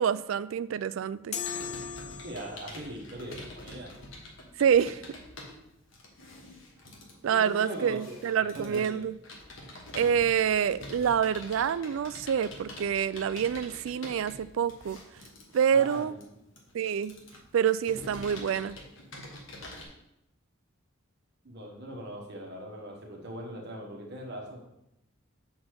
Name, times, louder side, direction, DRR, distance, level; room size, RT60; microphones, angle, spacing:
voice 1, 0.0-1.4 4.6-5.0 7.2-9.1 9.9-15.0 15.5-16.1 16.7-17.1 17.5-18.8, right 8 dB, 75° right, 17 dB, 0.3 m, -27 dB
sound 1, 1.3-2.8, left 7 dB, 35° left, 0.6 m, -37 dB
Computer keyboard, 1.4-19.9, left 1 dB, 65° left, 1.4 m, -46 dB
voice 2, 2.2-4.0 7.3-9.0 15.7-16.4 21.4-24.6, right 1 dB, 55° right, -1 dB, 1.3 m, -41 dB
6.1 x 4.2 x 6.3 m, 0.84 s
head